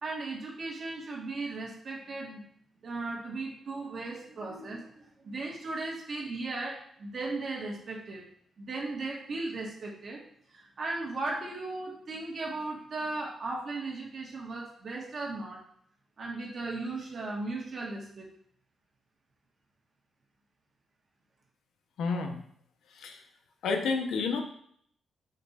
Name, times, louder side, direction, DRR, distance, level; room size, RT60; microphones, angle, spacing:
voice 1, 0.0-2.4 2.8-8.2 8.6-10.2 10.5-15.6 16.2-18.3, right 3 dB, 50° right, -2 dB, 1.2 m, -37 dB
voice 2, 22.0-22.4 22.9-23.2 23.6-24.4, left 4 dB, 90° left, 4 dB, 0.6 m, -30 dB
5.2 x 2.3 x 4.1 m, 0.65 s
cardioid pair, 100°, 0 cm